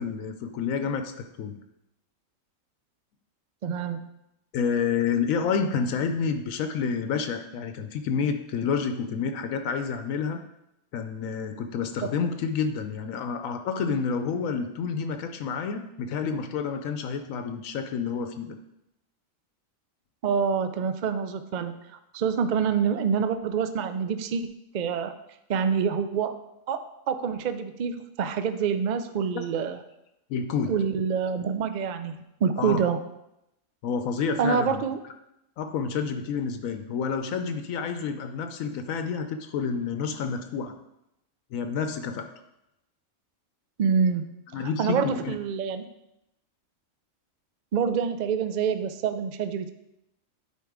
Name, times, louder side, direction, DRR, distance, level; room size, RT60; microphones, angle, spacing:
voice 1, 0.0-1.6 4.5-10.4 10.9-18.6 29.3-29.4 30.3-30.7 32.6-32.8 33.8-34.8 35.6-40.7 41.5-42.3 44.5-45.3, left 6 dB, 80° left, 7 dB, 1.0 m, -29 dB
voice 2, 3.6-4.0 20.2-21.7 22.1-25.1 25.5-26.4 26.7-29.8 30.7-33.0 34.4-35.0 43.8-44.2 44.6-45.9 47.7-49.7, right 6 dB, 70° right, 10 dB, 0.4 m, -26 dB
10.5 x 4.4 x 3.6 m, 0.86 s
omnidirectional pair, 1.4 m